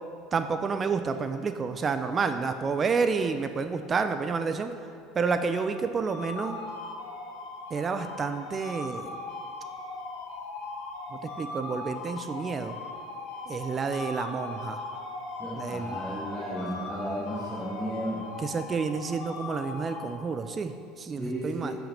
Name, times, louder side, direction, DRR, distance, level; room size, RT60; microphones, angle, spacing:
voice 1, 0.3-4.7 5.1-6.6 7.7-9.2 11.1-12.8 13.5-14.8 15.6-16.0 18.4-21.8, right 5 dB, 25° right, 9 dB, 0.3 m, -29 dB
sound 1, 5.3-20.6, left 3 dB, 70° left, 1.3 m, -39 dB
voice 2, 15.4-18.2 21.2-21.8, equal, ahead, -10 dB, 1.5 m, -34 dB
7.2 x 5.8 x 5.2 m, 2.4 s
cardioid pair, 135°, 0 cm